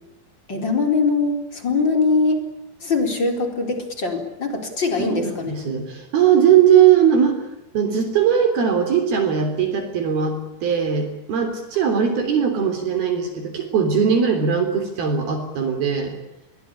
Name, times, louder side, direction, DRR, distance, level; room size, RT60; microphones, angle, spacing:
voice 1, 0.5-2.4 2.8-5.6 12.1-12.3, left 4 dB, 25° left, 5 dB, 4.5 m, -22 dB
voice 2, 5.0-7.4 7.7-16.1, right 8 dB, 60° right, 7 dB, 5.2 m, -19 dB
29.5 x 22.5 x 8.6 m, 0.92 s
omnidirectional pair, 5.0 m